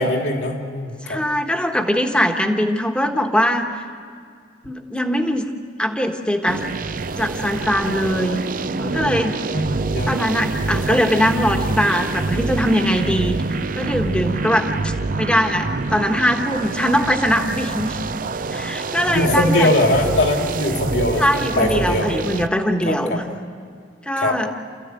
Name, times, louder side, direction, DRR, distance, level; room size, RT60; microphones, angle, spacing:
voice 1, 0.0-1.2 9.5-10.3 10.9-11.0 19.1-22.2 22.9-23.2 24.2-24.4, left 1 dB, 65° left, 2 dB, 2.7 m, -21 dB
voice 2, 1.0-3.7 4.7-5.5 5.8-6.6 7.2-8.4 8.8-9.3 10.1-13.4 13.8-18.0 18.5-19.7 21.2-23.2 24.1-24.5, equal, 5° left, 4 dB, 1.4 m, -21 dB
sound 1, 6.5-22.5, right 3 dB, 50° right, 0.6 m, -26 dB
28.5 x 15.0 x 9.2 m, 2.2 s
head